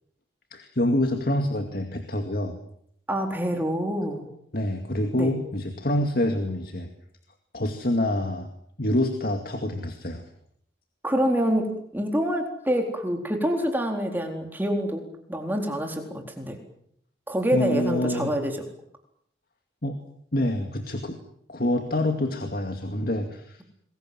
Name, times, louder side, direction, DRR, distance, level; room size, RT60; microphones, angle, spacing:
voice 1, 0.5-2.6 4.5-6.9 7.5-8.5 8.8-10.2 17.5-18.3 19.8-20.0 20.3-21.2 21.5-23.6, left 1 dB, 50° left, 5 dB, 2.3 m, -26 dB
voice 2, 3.1-4.3 5.1-5.3 11.0-16.6 17.3-18.6, equal, 10° right, 3 dB, 4.0 m, -26 dB
28.0 x 21.5 x 7.7 m, 0.70 s
head